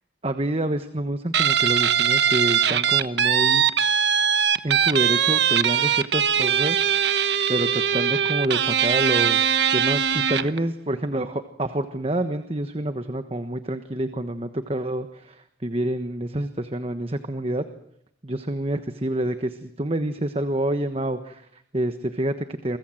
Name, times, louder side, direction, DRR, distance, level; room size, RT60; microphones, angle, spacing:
voice 1, 0.2-3.6 4.6-6.8 7.5-9.4 9.7-17.6 18.2-22.8, right 1 dB, 30° right, 9 dB, 1.3 m, -27 dB
Guitar, 1.3-10.6, right 8 dB, 65° right, 1.2 m, -21 dB
29.5 x 24.0 x 7.8 m, 0.73 s
head